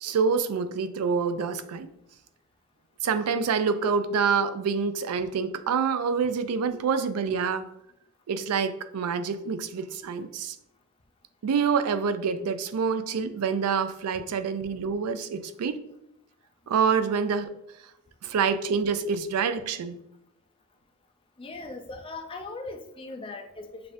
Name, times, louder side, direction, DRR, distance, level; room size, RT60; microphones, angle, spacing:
voice 1, 0.0-1.9 3.0-7.7 8.3-10.6 11.4-15.8 16.7-17.5 18.2-20.0, right 6 dB, 80° right, 0.4 m, -27 dB
voice 2, 21.4-23.9, left 3 dB, 25° left, 0.4 m, -39 dB
6.7 x 2.5 x 2.5 m
head